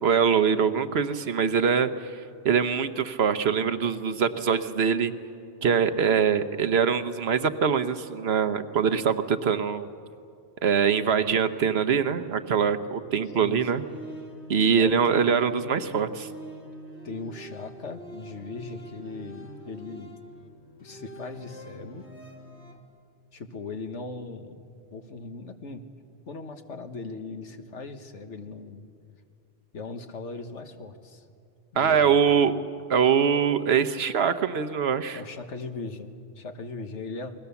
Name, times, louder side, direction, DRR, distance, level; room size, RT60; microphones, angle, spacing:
voice 1, 0.0-2.2 2.4-5.1 5.6-9.9 10.6-13.8 14.5-16.3 31.8-32.5 32.9-35.2, right 7 dB, 65° right, 10 dB, 1.2 m, -23 dB
voice 2, 13.4-13.9 14.8-15.2 17.0-20.2 20.8-22.0 23.3-24.6 24.9-25.9 26.3-28.9 29.7-31.3 31.7-32.4 35.1-37.3, left 3 dB, 85° left, 7 dB, 1.8 m, -39 dB
sound 1, 13.5-22.8, right 1 dB, 65° left, 2.5 m, -44 dB
29.0 x 21.5 x 7.1 m, 2.4 s
omnidirectional pair, 1.2 m